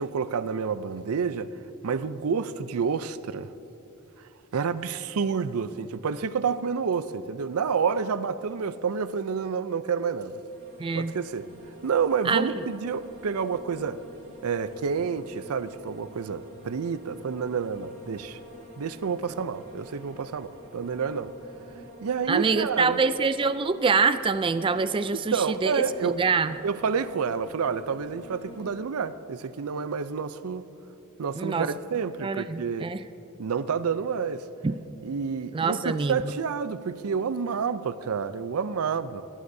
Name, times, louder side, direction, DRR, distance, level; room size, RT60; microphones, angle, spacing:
voice 1, 0.0-1.5 1.8-3.5 4.5-10.4 10.9-11.5 11.8-14.0 14.4-18.4 18.8-21.3 22.0-23.0 25.1-26.2 26.6-30.6 31.2-32.9 33.4-34.4 35.0-39.2, right 6 dB, 90° right, 0.5 m, -29 dB
sound 1, 10.1-28.7, right 1 dB, 60° right, 2.8 m, -48 dB
voice 2, 10.8-11.1 12.3-12.5 22.3-25.9 26.1-26.5 31.4-31.7 32.2-33.0 34.6-34.7 35.5-36.2, right 4 dB, 25° right, 0.3 m, -25 dB
22.0 x 16.0 x 2.7 m
head